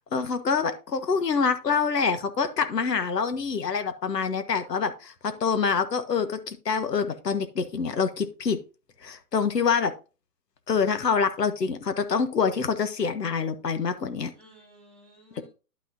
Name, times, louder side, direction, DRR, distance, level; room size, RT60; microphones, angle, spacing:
voice 1, 0.1-8.6 9.0-9.9 10.7-14.3, left 5 dB, 90° left, 10 dB, 1.5 m, -26 dB
voice 2, 14.3-15.5, left 1 dB, ahead, 0 dB, 2.4 m, -55 dB
11.0 x 6.0 x 2.7 m, 0.32 s
hypercardioid pair, 155°, 47 cm